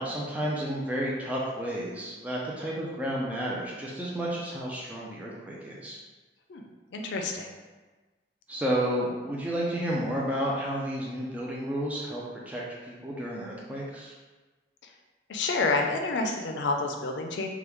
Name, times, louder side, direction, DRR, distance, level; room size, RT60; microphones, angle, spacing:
voice 1, 0.0-6.0 8.5-14.1, equal, 10° right, -5 dB, 0.4 m, -31 dB
voice 2, 6.9-7.5 15.3-17.5, left 3 dB, 85° left, 3 dB, 0.4 m, -28 dB
3.5 x 2.3 x 3.0 m, 1.3 s
head